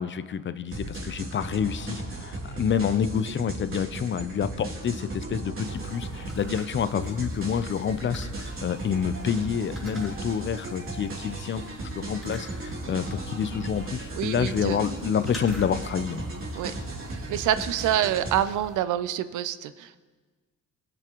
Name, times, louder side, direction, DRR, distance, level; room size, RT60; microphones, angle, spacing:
voice 1, 0.0-11.6 11.9-16.3, left 7 dB, 40° left, 13 dB, 0.5 m, -28 dB
sound 1, 0.7-18.4, right 2 dB, 45° right, 3.0 m, -36 dB
sound 2, 5.6-18.8, equal, ahead, 3.2 m, -49 dB
voice 2, 14.2-14.9 16.5-16.7 17.1-20.0, right 11 dB, 80° right, 14 dB, 0.5 m, -27 dB
20.0 x 7.1 x 3.0 m, 1.4 s
cardioid pair, 90°, 30 cm